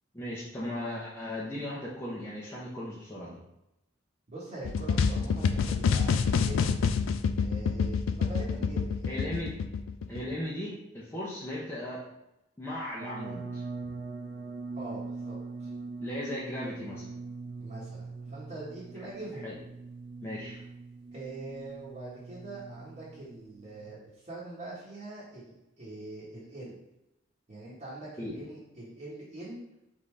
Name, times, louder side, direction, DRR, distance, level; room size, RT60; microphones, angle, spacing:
voice 1, 0.1-3.4 9.1-9.5 10.1-12.0 12.6-13.6 16.0-17.0 19.4-19.6 20.2-20.6 28.2-28.3, left 1 dB, 15° left, -7 dB, 0.7 m, -37 dB
voice 2, 4.3-6.7 7.4-9.2 14.7-15.7 17.6-19.5 21.1-26.8 27.5-29.6, right 2 dB, 35° right, -9 dB, 1.2 m, -43 dB
sound 1, 4.6-10.3, left 6 dB, 80° left, 0.3 m, -27 dB
sound 2, 13.0-23.9, right 3 dB, 55° right, 0.4 m, -42 dB
3.9 x 3.6 x 3.2 m, 0.89 s
head